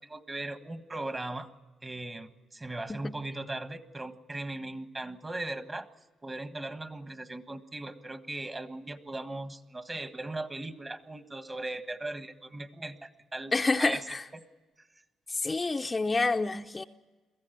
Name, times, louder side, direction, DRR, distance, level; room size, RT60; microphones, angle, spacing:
voice 1, 0.0-1.5 1.8-5.9 6.2-13.5 13.8-14.0 14.3-14.4, right 2 dB, 20° right, 10 dB, 1.5 m, -38 dB
voice 2, 13.5-14.2 15.3-16.8, left 3 dB, 25° left, 5 dB, 0.7 m, -28 dB
23.0 x 15.0 x 9.3 m, 1.3 s
cardioid pair, 90°, 0 cm